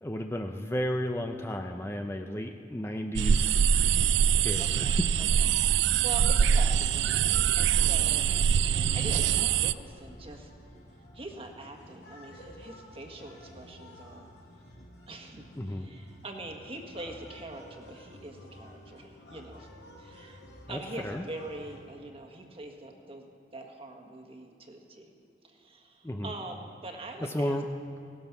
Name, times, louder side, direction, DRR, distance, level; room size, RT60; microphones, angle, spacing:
voice 1, 0.0-3.7 4.3-4.9 15.6-15.9 20.7-21.2 26.0-26.3 27.2-27.6, equal, 15° left, 4 dB, 0.6 m, -33 dB
sound 1, 3.2-9.7, right 8 dB, 80° right, 0.3 m, -24 dB
voice 2, 4.6-8.3 8.6-10.5 11.1-14.2 15.1-19.7 20.0-20.4 20.7-23.2 23.5-25.1 25.4-27.6, right 2 dB, 35° right, 3 dB, 1.6 m, -43 dB
sound 2, 7.5-21.8, equal, 75° left, 3.9 m, -51 dB
17.5 x 12.5 x 6.0 m, 2.4 s
head